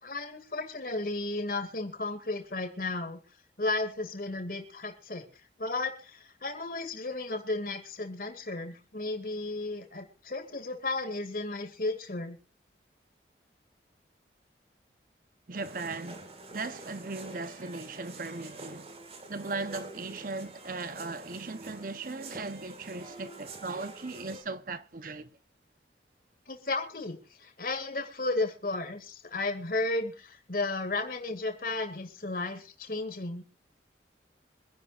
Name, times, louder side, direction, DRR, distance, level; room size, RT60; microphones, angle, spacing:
voice 1, 0.0-3.2 3.6-5.3 5.6-12.4 26.5-33.4, left 2 dB, 50° left, 2.3 m, -34 dB
sound 1, 15.5-24.4, right 2 dB, 35° right, 1.8 m, -47 dB
voice 2, 15.5-18.9 19.3-25.3, right 3 dB, 50° right, 0.8 m, -38 dB
25.0 x 10.5 x 2.5 m
head